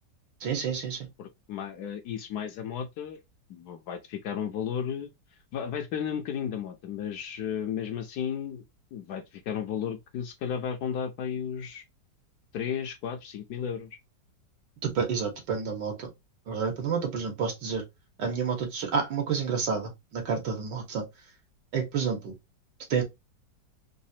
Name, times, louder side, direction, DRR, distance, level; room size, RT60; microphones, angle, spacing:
voice 1, 0.4-1.1 14.8-16.1 16.5-17.8 18.2-21.0 21.7-22.4 22.9-23.0, right 6 dB, 75° right, 1.9 m, -29 dB
voice 2, 1.2-3.2 3.5-5.1 5.5-8.6 8.9-11.8 12.5-14.0, left 8 dB, 70° left, 1.1 m, -34 dB
4.0 x 2.4 x 2.7 m
omnidirectional pair, 1.9 m